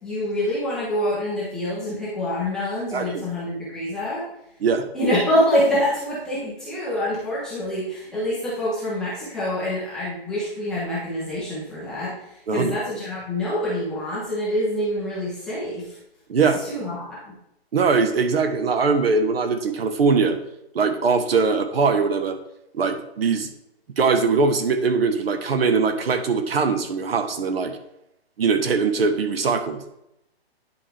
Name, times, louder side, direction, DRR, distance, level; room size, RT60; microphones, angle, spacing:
voice 1, 0.0-4.2 4.9-16.0 16.6-17.3, left 1 dB, ahead, -9 dB, 0.5 m, -26 dB
voice 2, 2.9-3.2 4.6-4.9 12.5-12.7 16.3-16.6 17.7-20.4 20.7-22.4 22.7-23.5 24.0-27.8 28.4-30.0, right 4 dB, 65° right, 8 dB, 1.1 m, -21 dB
9.9 x 4.5 x 3.3 m, 0.83 s
hypercardioid pair, 160°, 32 cm